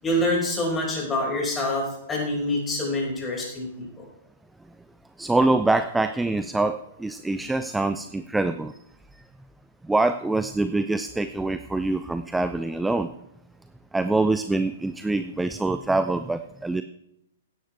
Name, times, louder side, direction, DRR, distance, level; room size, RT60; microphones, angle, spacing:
voice 1, 0.0-4.0, left 1 dB, 15° left, -2 dB, 5.3 m, -26 dB
voice 2, 5.2-8.7 9.8-13.1 13.9-16.8, right 2 dB, 5° right, 11 dB, 0.4 m, -24 dB
16.5 x 11.5 x 3.4 m, 0.83 s
figure-of-eight pair, 110°, 0 cm